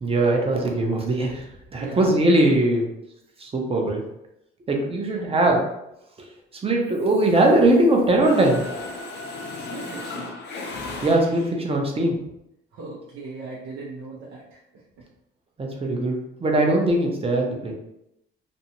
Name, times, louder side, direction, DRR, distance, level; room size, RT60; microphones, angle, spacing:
voice 1, 0.0-1.4 1.7-2.9 3.4-4.0 4.7-5.6 6.6-8.6 11.0-12.1 15.6-17.7, right 1 dB, 30° right, 0 dB, 0.6 m, -20 dB
voice 2, 1.8-2.2 5.1-5.4 9.5-10.4 12.7-15.1, right 3 dB, 75° right, -6 dB, 0.6 m, -39 dB
Mechanisms, 6.9-7.8 8.1-11.7, left 2 dB, 60° left, 0.6 m, -36 dB
2.5 x 2.1 x 2.8 m, 0.83 s
cardioid pair, 90°, 20 cm